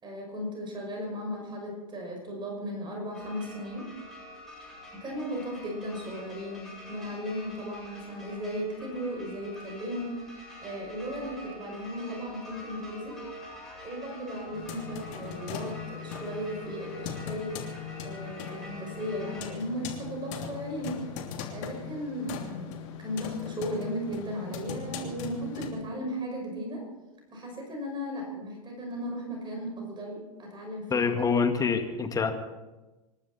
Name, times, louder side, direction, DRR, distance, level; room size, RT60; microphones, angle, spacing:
voice 1, 0.0-3.9 5.0-13.2 13.8-17.6 18.0-21.0 21.5-26.8 27.3-31.1, equal, 25° right, 1 dB, 6.0 m, -36 dB
sound 1, 3.1-19.5, equal, ahead, 7.7 m, -46 dB
sound 2, 14.5-25.7, left 8 dB, 60° left, 3.0 m, -40 dB
voice 2, 30.9-32.3, left 5 dB, 20° left, 5 dB, 2.1 m, -26 dB
27.0 x 12.5 x 4.3 m, 1.1 s
hypercardioid pair, 105°, 18 cm